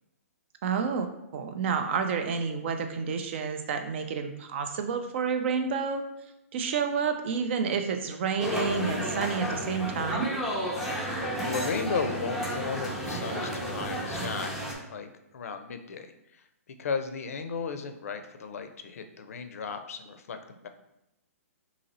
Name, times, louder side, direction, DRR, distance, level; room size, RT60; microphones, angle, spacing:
voice 1, 0.6-6.0 6.5-10.4, right 6 dB, 50° right, 6 dB, 0.5 m, -29 dB
sound 1, 8.4-14.7, equal, 5° right, 0.5 m, -32 dB
voice 2, 11.4-14.6 14.9-15.1 15.3-16.1 16.8-20.7, left 5 dB, 70° left, 8 dB, 0.4 m, -35 dB
2.8 x 2.8 x 4.0 m, 0.89 s
hypercardioid pair, 140°, 8 cm